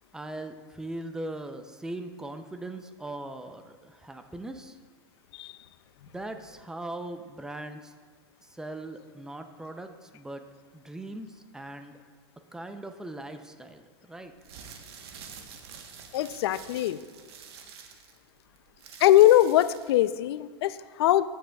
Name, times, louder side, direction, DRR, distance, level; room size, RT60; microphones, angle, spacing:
voice 1, 0.1-4.8 6.1-7.9 8.4-10.4 10.7-12.0 12.5-14.3, right 1 dB, 5° right, 7 dB, 0.5 m, -40 dB
sound 1, 14.3-20.0, right 7 dB, 70° right, 1.1 m, -47 dB
voice 2, 16.1-17.0 19.0-21.3, left 13 dB, 75° left, 15 dB, 0.4 m, -21 dB
14.0 x 7.5 x 2.3 m, 1.5 s
supercardioid pair, 135°, 14 cm